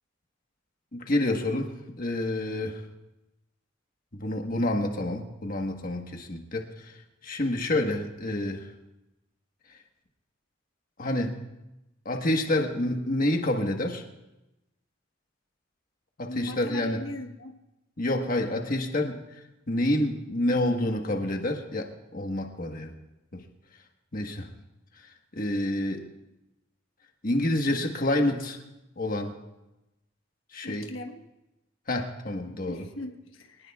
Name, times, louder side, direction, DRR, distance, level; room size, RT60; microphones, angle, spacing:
voice 1, 0.9-2.8 4.1-6.9 7.2-8.6 11.0-11.3 12.0-14.0 16.2-17.0 18.0-19.2 19.7-22.9 24.1-24.5 25.3-26.0 27.2-28.6 29.0-29.3 30.5-30.9 31.9-32.8, left 1 dB, 45° left, 3 dB, 1.4 m, -28 dB
voice 2, 16.3-17.6 30.6-31.2 32.4-33.7, left 1 dB, 90° left, 4 dB, 1.2 m, -39 dB
24.0 x 19.0 x 2.4 m, 0.96 s
head